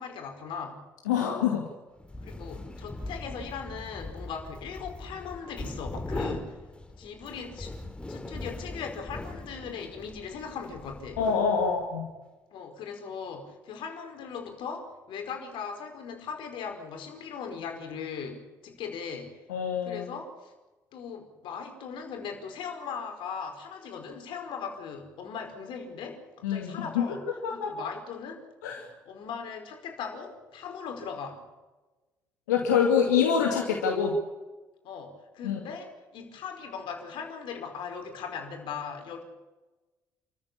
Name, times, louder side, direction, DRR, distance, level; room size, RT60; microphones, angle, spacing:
voice 1, 0.0-0.9 2.2-6.6 7.0-7.8 8.1-11.2 12.5-19.4 19.8-20.5 20.9-27.2 27.5-28.4 28.8-31.5 34.8-39.2, left 6 dB, 65° left, 4 dB, 5.2 m, -39 dB
voice 2, 1.1-1.7 11.2-12.1 19.5-20.1 26.4-27.1 27.4-27.7 28.6-28.9 32.5-34.2 35.4-35.6, left 7 dB, 85° left, 1 dB, 2.5 m, -25 dB
sound 1, 2.0-11.9, left 2 dB, 10° left, 3.4 m, -40 dB
29.5 x 14.5 x 8.6 m, 1.2 s
hypercardioid pair, 50°, 9 cm